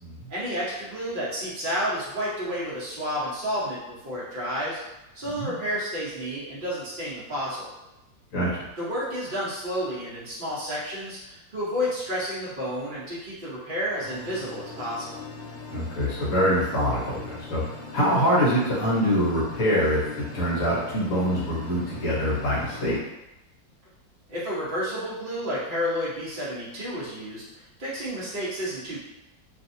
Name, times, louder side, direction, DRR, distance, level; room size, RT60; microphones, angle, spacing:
voice 1, 0.3-4.8 5.1-7.7 8.8-15.2 24.3-29.0, equal, 40° right, -7 dB, 0.8 m, -31 dB
voice 2, 8.3-8.7 15.7-23.0, equal, 55° left, -6 dB, 1.1 m, -25 dB
sound 1, 14.0-23.0, left 4 dB, 85° left, 1.3 m, -40 dB
3.0 x 2.6 x 2.6 m, 0.95 s
omnidirectional pair, 2.0 m